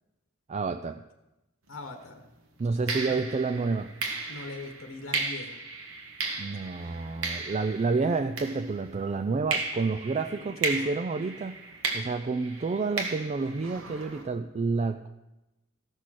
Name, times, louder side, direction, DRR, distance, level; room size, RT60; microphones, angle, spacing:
voice 1, 0.5-1.0 2.6-3.9 6.4-11.6 11.9-15.1, right 4 dB, 30° right, 8 dB, 0.4 m, -29 dB
voice 2, 1.7-2.2 2.9-3.2 4.3-5.6 10.3-10.9, left 2 dB, 70° left, 6 dB, 1.1 m, -41 dB
sound 1, 1.7-1.9 2.9-9.0 9.5-14.2, right 3 dB, 75° right, 1.7 m, -35 dB
14.5 x 6.3 x 6.3 m, 0.99 s
head